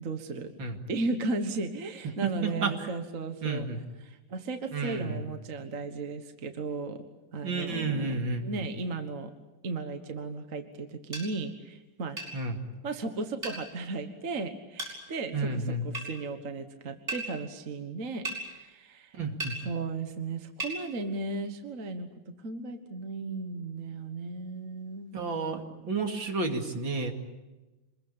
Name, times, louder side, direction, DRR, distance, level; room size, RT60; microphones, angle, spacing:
voice 1, 0.0-0.5 0.9-3.6 4.0-7.0 7.3-9.3 9.6-12.2 12.8-19.2 19.6-25.1, right 3 dB, 40° right, 7 dB, 1.7 m, -35 dB
voice 2, 2.4-2.9 3.4-3.8 4.7-5.2 7.4-8.7 12.3-12.6 15.3-15.8 19.2-19.5 25.1-27.1, right 3 dB, 60° right, 4 dB, 3.2 m, -31 dB
sound 1, 11.1-11.3 12.2-12.3 13.4-13.6 14.8-15.0 15.9-16.1 17.1-17.2 18.2-18.4 19.4-19.6 20.6-20.8, right 2 dB, 25° right, 7.6 m, -34 dB
27.0 x 21.5 x 8.8 m, 1.1 s
omnidirectional pair, 2.4 m